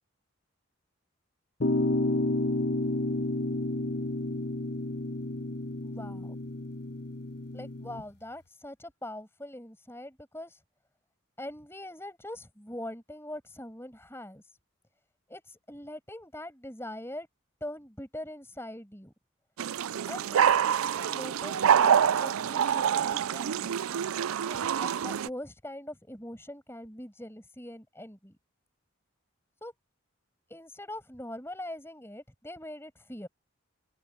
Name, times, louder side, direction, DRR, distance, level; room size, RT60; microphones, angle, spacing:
sound 1, 1.6-8.0, left 2 dB, 50° left, 1.1 m, -31 dB
voice 1, 5.8-6.3 7.5-10.6 11.4-14.4 15.3-17.3 17.6-19.1 20.1-23.8 24.5-28.4 29.6-29.7 30.5-33.3, left 1 dB, 10° left, 6.9 m, -42 dB
sound 2, 19.6-25.3, right 8 dB, 85° right, 0.4 m, -26 dB
open air
head